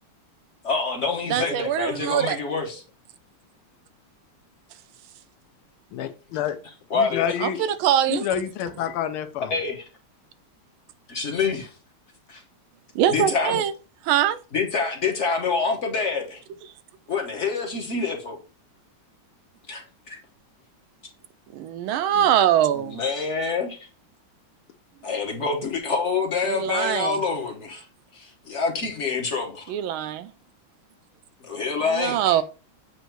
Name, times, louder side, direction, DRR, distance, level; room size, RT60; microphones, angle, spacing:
voice 1, 0.6-2.8 6.9-7.3 9.5-9.8 11.1-11.7 12.3-12.4 13.1-13.6 14.5-16.4 17.1-18.4 19.7-20.2 22.1-22.2 22.7-23.8 25.0-27.8 28.1-29.7 31.4-32.4, left 4 dB, 45° left, 1.1 m, -26 dB
voice 2, 1.3-2.4 7.4-8.3 12.9-13.7 14.1-14.4 21.5-23.0 26.5-27.2 29.7-30.3 31.9-32.4, right 11 dB, 80° right, 1.4 m, -23 dB
voice 3, 5.9-6.6 6.9-7.7 8.1-9.5, left 9 dB, 85° left, 1.6 m, -28 dB
7.8 x 2.7 x 4.5 m
omnidirectional pair, 2.3 m